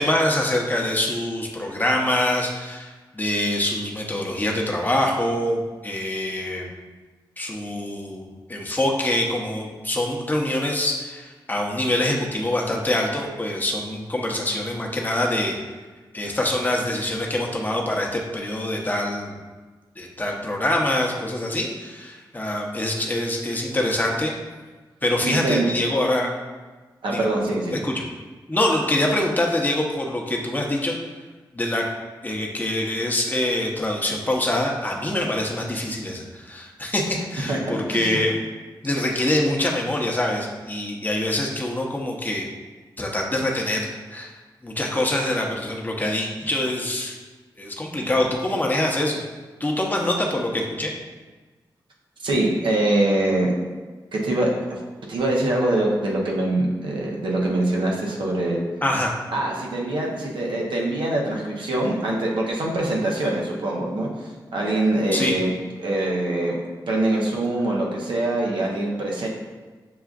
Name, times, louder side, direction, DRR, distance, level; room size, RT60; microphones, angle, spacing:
voice 1, 0.0-6.7 7.4-15.6 16.1-19.4 20.0-24.3 25.0-26.3 27.1-27.3 27.7-27.9 28.5-31.0 31.5-31.9 32.2-38.4 38.8-42.5 43.0-44.3 44.6-47.2 47.6-49.2 49.6-50.9 58.8-59.1 65.1-65.3, left 1 dB, 20° left, -1 dB, 0.7 m, -25 dB
voice 2, 25.2-25.7 27.0-27.8 37.5-37.6 37.9-38.2 52.2-53.5 54.1-54.8 55.1-58.6 59.3-65.5 65.8-66.6 66.9-69.3, right 1 dB, 80° right, -2 dB, 0.8 m, -24 dB
6.8 x 2.4 x 2.4 m, 1.3 s
cardioid pair, 55°, 8 cm